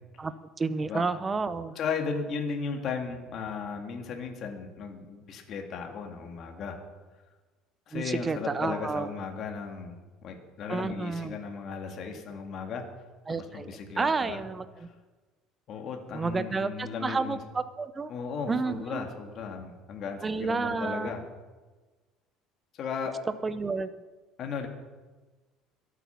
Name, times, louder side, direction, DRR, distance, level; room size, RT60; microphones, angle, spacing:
voice 1, 0.6-1.8 7.9-9.1 10.7-11.4 13.3-14.9 16.1-18.1 18.5-19.1 20.2-21.2 23.4-23.9, right 4 dB, 15° right, 13 dB, 0.6 m, -30 dB
voice 2, 1.8-6.8 7.9-12.8 13.3-14.4 15.7-17.4 18.1-21.2 22.7-23.2 24.4-24.7, left 5 dB, 40° left, 3 dB, 2.0 m, -36 dB
22.5 x 8.4 x 5.8 m, 1.3 s
cardioid pair, 160°, 0 cm